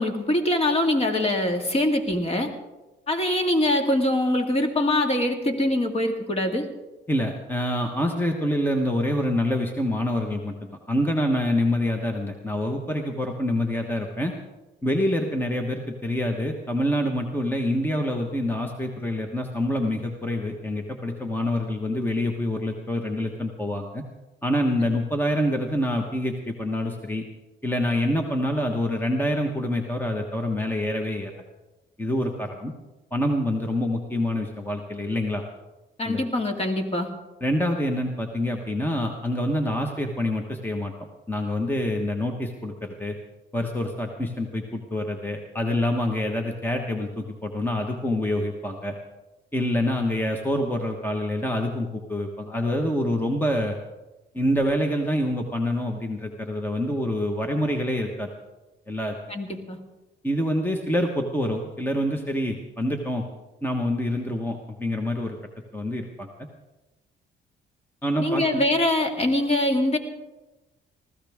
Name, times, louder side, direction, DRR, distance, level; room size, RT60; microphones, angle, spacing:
voice 1, 0.0-2.5 3.1-6.7 36.0-37.1 59.3-59.8 68.2-70.0, left 1 dB, 30° left, 4 dB, 2.1 m, -23 dB
voice 2, 7.1-14.3 14.8-24.0 24.4-27.2 27.6-31.3 32.0-32.7 33.1-35.4 36.0-36.2 37.4-40.9 41.3-43.1 43.5-48.9 49.5-53.8 54.3-58.3 58.9-59.1 60.2-63.2 63.6-65.4 65.7-66.3 68.0-68.6, left 1 dB, 10° left, 3 dB, 1.3 m, -26 dB
20.0 x 15.0 x 3.6 m, 1.1 s
cardioid pair, 90°, 20 cm